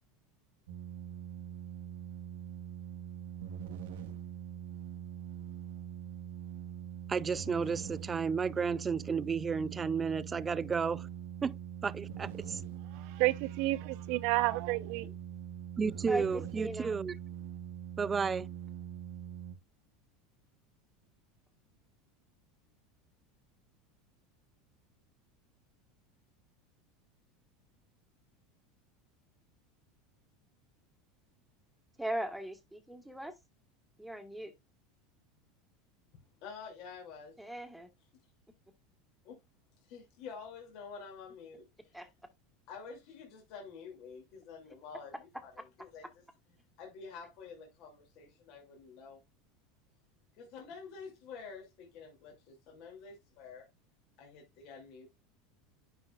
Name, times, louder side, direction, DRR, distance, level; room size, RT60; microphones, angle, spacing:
sound 1, 0.7-19.5, right 9 dB, 80° right, 1.1 m, -43 dB
voice 1, 7.1-11.1 11.4-12.6 15.8-17.2 18.0-18.5, right 5 dB, 20° right, 0.4 m, -32 dB
voice 2, 12.9-15.1, right 19 dB, 65° right, 0.6 m, -31 dB
voice 3, 16.1-16.9 32.0-33.3 34.0-34.5 37.4-37.9 41.9-42.1, right 1 dB, ahead, 1.5 m, -39 dB
voice 4, 36.4-37.4 39.2-39.4 39.9-42.0 42.7-46.0 46.8-49.2 50.4-53.7 54.2-55.1, left 5 dB, 55° left, 2.7 m, -49 dB
9.8 x 5.6 x 2.4 m
supercardioid pair, 120°, 0 cm